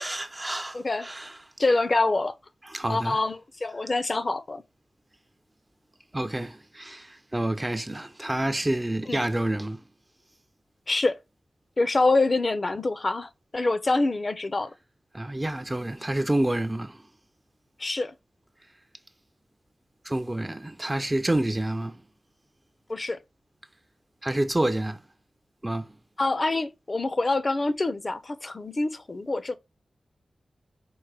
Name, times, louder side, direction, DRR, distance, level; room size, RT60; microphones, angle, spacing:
voice 1, 0.0-1.4 2.7-3.2 6.1-9.8 15.1-17.0 20.0-22.0 24.2-25.0 25.6-25.9, right 1 dB, 20° right, 0.3 m, -28 dB
voice 2, 0.7-1.1 1.6-2.3 2.9-4.6 9.1-9.3 10.9-11.2 11.8-14.7 17.8-18.1 22.9-23.2 26.2-29.6, left 2 dB, 40° left, 0.4 m, -26 dB
4.6 x 2.1 x 4.6 m
wide cardioid pair, 70°, 0 cm